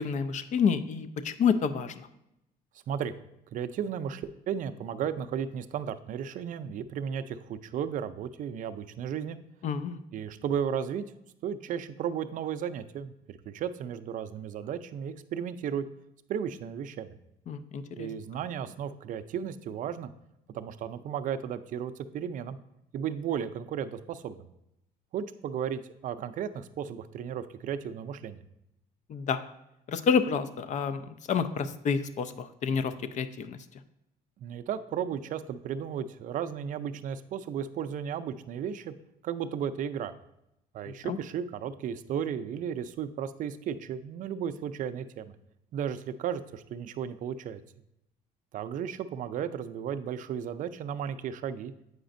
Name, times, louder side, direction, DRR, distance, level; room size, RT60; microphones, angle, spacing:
voice 1, 0.0-2.1 9.6-10.0 17.5-18.1 29.1-29.5 29.9-33.6 41.0-41.2, left 6 dB, 45° left, 12 dB, 0.4 m, -29 dB
voice 2, 3.5-9.4 10.1-11.1 11.4-15.8 16.3-17.1 18.0-20.1 20.5-22.6 22.9-24.5 25.1-28.4 34.4-38.9 39.2-40.1 40.7-45.3 45.7-47.6 48.5-51.7, right 8 dB, 50° right, 11 dB, 0.4 m, -34 dB
7.8 x 5.0 x 2.6 m, 0.84 s
cardioid pair, 110°, 17 cm